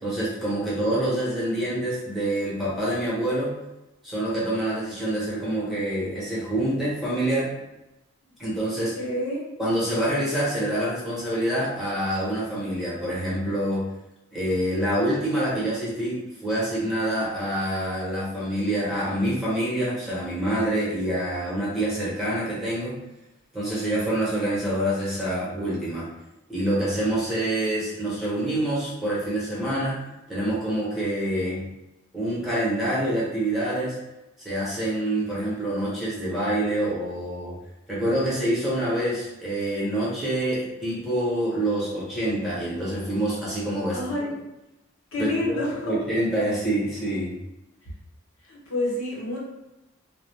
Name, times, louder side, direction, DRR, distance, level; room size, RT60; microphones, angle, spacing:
voice 1, 0.0-3.6 4.0-7.6 8.4-8.9 9.6-13.9 14.3-22.9 23.5-26.1 26.5-31.7 32.1-34.0 34.4-37.5 37.9-44.3 45.2-45.6 45.8-47.4, right 1 dB, ahead, -8 dB, 0.9 m, -26 dB
voice 2, 8.9-9.4 43.9-44.3 45.1-45.9 48.5-49.4, left 1 dB, 80° left, -5 dB, 1.0 m, -28 dB
2.3 x 2.1 x 3.2 m, 0.95 s
head